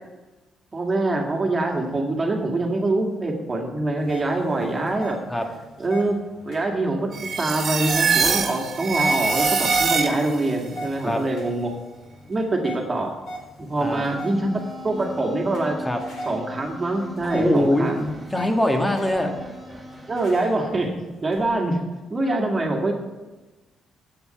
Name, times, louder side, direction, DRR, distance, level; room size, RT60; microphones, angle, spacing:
voice 1, 0.7-5.2 5.8-6.2 6.5-11.7 12.3-13.1 13.6-15.8 16.3-18.1 20.1-21.8 22.1-22.9, right 2 dB, 30° right, 1 dB, 2.1 m, -24 dB
sound 1, 4.0-21.4, right 1 dB, 65° left, 4.0 m, -41 dB
sound 2, 7.1-10.5, right 5 dB, 55° right, 1.4 m, -23 dB
sound 3, 13.8-20.3, left 1 dB, 10° right, 3.4 m, -39 dB
voice 2, 17.3-17.9 18.3-19.3, left 1 dB, 10° left, 3 dB, 1.5 m, -22 dB
8.4 x 6.9 x 6.8 m, 1.2 s
cardioid pair, 90°, 0 cm